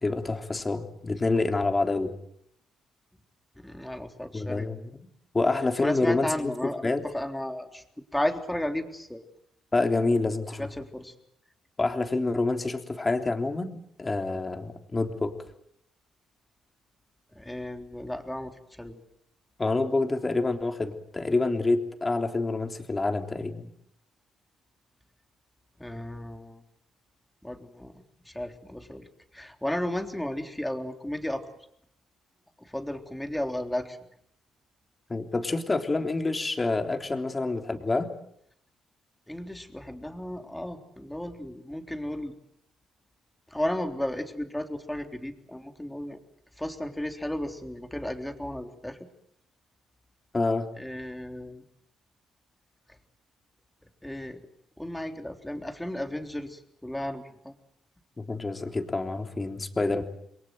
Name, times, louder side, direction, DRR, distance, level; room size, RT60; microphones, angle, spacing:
voice 1, 0.0-2.1 4.3-5.0 5.3-6.5 6.8-7.1 9.7-10.7 11.8-15.4 19.6-23.7 35.1-38.1 50.3-50.7 58.2-60.0, left 3 dB, 25° left, 5 dB, 3.4 m, -27 dB
voice 2, 3.6-4.7 5.8-7.8 8.1-9.2 10.6-11.1 17.4-19.0 25.8-26.6 27.4-27.9 28.3-29.1 29.3-31.5 32.6-34.0 39.3-42.3 43.5-46.2 46.6-49.0 50.8-51.6 54.0-54.4 54.8-57.5, left 1 dB, 5° left, 5 dB, 3.6 m, -34 dB
28.5 x 22.5 x 7.9 m, 0.72 s
cardioid pair, 90°, 0 cm